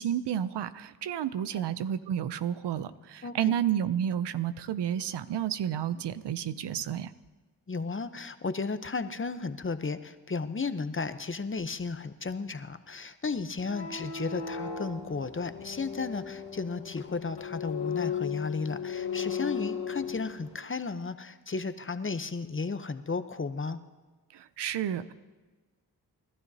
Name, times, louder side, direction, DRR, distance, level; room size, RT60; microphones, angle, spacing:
voice 1, 0.0-7.1 24.3-25.1, right 10 dB, 85° right, 14 dB, 0.6 m, -31 dB
voice 2, 3.2-3.5 7.7-23.8, left 4 dB, 30° left, 11 dB, 0.8 m, -34 dB
sound 1, 13.6-20.5, left 7 dB, 75° left, 1.8 m, -36 dB
30.0 x 12.0 x 2.8 m, 1.3 s
cardioid pair, 40°, 40 cm